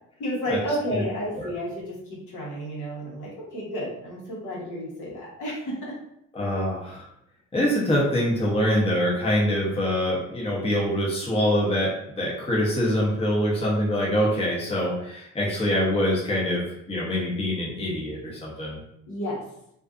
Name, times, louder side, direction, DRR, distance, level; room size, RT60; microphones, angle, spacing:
voice 1, 0.2-6.0 19.1-19.4, equal, 70° left, -4 dB, 1.1 m, -31 dB
voice 2, 6.3-7.1 7.5-11.9 12.2-18.8, equal, 20° left, -4 dB, 0.7 m, -24 dB
2.4 x 2.4 x 2.4 m, 0.76 s
cardioid pair, 105°, 32 cm